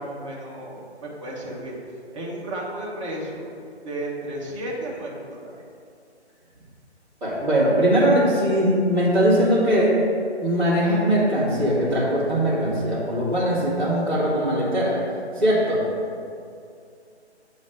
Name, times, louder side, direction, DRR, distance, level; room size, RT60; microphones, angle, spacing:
voice 1, 0.0-1.8 2.1-3.5 3.8-5.5 14.1-14.2, right 1 dB, 30° right, -5 dB, 1.0 m, -33 dB
voice 2, 7.2-9.9 10.4-14.9 15.3-15.8, equal, 5° right, -12 dB, 1.3 m, -20 dB
8.4 x 3.1 x 5.1 m, 2.4 s
figure-of-eight pair, 150°, 34 cm